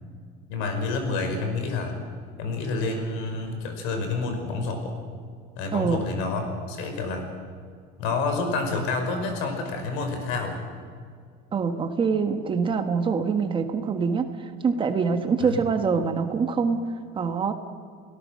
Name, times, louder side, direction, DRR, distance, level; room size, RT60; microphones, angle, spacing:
voice 1, 0.5-2.0 2.4-5.0 5.6-7.3 8.0-10.6 15.4-15.6, left 3 dB, 75° left, 5 dB, 5.4 m, -28 dB
voice 2, 5.7-6.0 11.5-16.8 17.1-17.5, right 5 dB, 25° right, 7 dB, 1.4 m, -25 dB
30.0 x 18.0 x 6.5 m, 2.1 s
cardioid pair, 155°, 21 cm